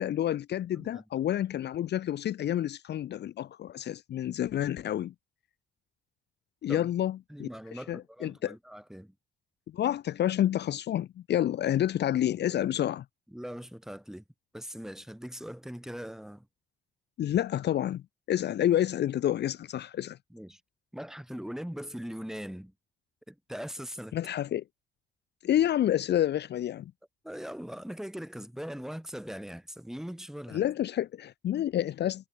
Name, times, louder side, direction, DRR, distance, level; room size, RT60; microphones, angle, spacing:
voice 1, 0.0-5.1 6.6-8.5 9.7-13.0 17.2-18.0 18.3-20.2 24.1-24.6 25.4-26.9 30.5-32.3, left 11 dB, 60° left, 0.6 m, -29 dB
voice 2, 7.3-9.1 13.3-14.2 14.5-16.5 20.3-20.6 20.9-22.7 23.3-24.2 27.2-30.6, equal, ahead, 4.0 m, -40 dB
cardioid pair, 90°, 20 cm